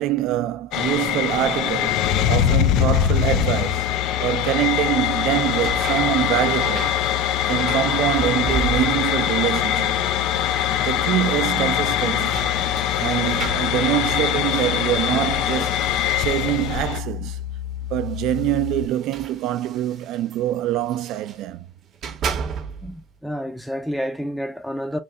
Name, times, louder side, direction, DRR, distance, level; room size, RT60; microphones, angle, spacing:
voice 1, 0.0-2.0 2.3-3.9 4.2-6.9 7.5-9.9 10.8-12.5 13.0-15.9 16.2-17.4 17.9-21.7, right 13 dB, 85° right, 0.5 m, -24 dB
sound 1, 0.7-17.0, left 10 dB, 90° left, 0.5 m, -23 dB
sound 2, 2.3-18.9, left 11 dB, 75° left, 1.7 m, -31 dB
sound 3, 4.8-9.2 9.5-10.2 10.5-10.6 11.7-17.1 18.0-21.5 21.8-23.0, right 6 dB, 50° right, 0.8 m, -35 dB
voice 2, 22.8-25.0, equal, ahead, 0.5 m, -29 dB
3.3 x 2.7 x 3.7 m
cardioid pair, 140°, 0 cm